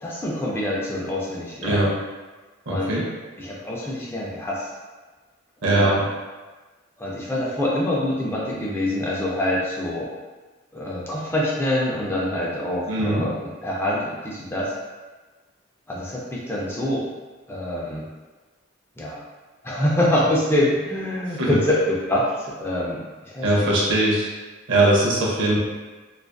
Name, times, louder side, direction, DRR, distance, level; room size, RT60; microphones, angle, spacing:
voice 1, 0.0-1.9 2.7-2.9 3.4-4.7 5.7-6.0 7.0-10.1 10.7-14.7 15.9-17.0 17.5-18.1 19.0-19.2 19.6-23.7, left 1 dB, 10° left, -5 dB, 0.4 m, -25 dB
voice 2, 1.6-2.0 2.7-3.1 5.6-6.1 12.9-13.3 21.4-21.6 23.4-24.3 24.7-25.6, right 1 dB, 70° right, -4 dB, 0.6 m, -20 dB
2.4 x 2.4 x 2.2 m, 1.3 s
head